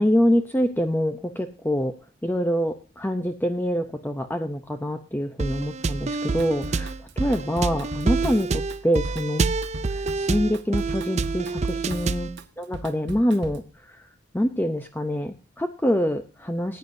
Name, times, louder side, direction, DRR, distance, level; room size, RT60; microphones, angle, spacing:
voice 1, 0.0-1.9 2.2-9.4 9.9-12.3 12.6-14.1 14.3-16.8, equal, 10° left, 6 dB, 0.6 m, -25 dB
sound 1, 5.4-12.4, right 4 dB, 30° right, 0.4 m, -27 dB
Drum kit / Drum, 6.4-13.7, right 1 dB, 55° right, 1.3 m, -37 dB
19.5 x 9.7 x 2.7 m, 0.36 s
head